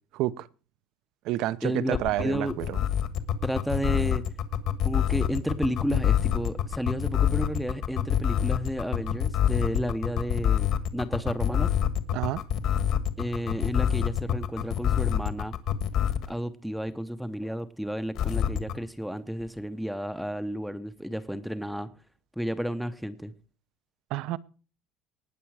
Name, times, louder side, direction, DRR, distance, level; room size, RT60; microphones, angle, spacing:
voice 1, 0.1-0.5 1.2-2.8 12.1-12.4 24.1-24.4, right 15 dB, 60° right, 0.8 m, -29 dB
voice 2, 1.6-2.5 3.4-4.2 4.8-11.7 13.2-15.5 16.3-21.9 22.4-23.3, equal, ahead, 0.7 m, -32 dB
sound 1, 1.9-16.3 18.1-18.7, left 10 dB, 50° left, 1.5 m, -25 dB
19.0 x 6.9 x 4.7 m
cardioid pair, 165°, 0 cm